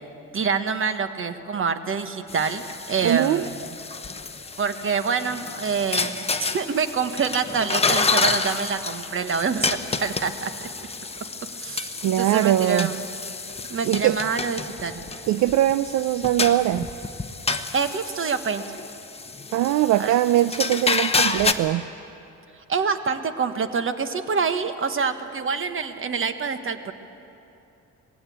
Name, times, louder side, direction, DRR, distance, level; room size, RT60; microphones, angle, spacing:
voice 1, 0.3-3.7 4.6-6.2 6.5-10.9 11.6-13.0 13.7-15.0 17.7-18.6 20.0-20.1 22.7-26.9, right 5 dB, 45° right, 9 dB, 1.4 m, -26 dB
sound 1, 2.3-21.5, left 4 dB, 20° left, 1.1 m, -29 dB
voice 2, 3.0-3.5 12.0-12.9 13.8-14.2 15.3-16.9 19.5-21.8, right 13 dB, 70° right, 13 dB, 0.5 m, -21 dB
20.5 x 16.5 x 8.6 m, 2.9 s
cardioid pair, 90°, 30 cm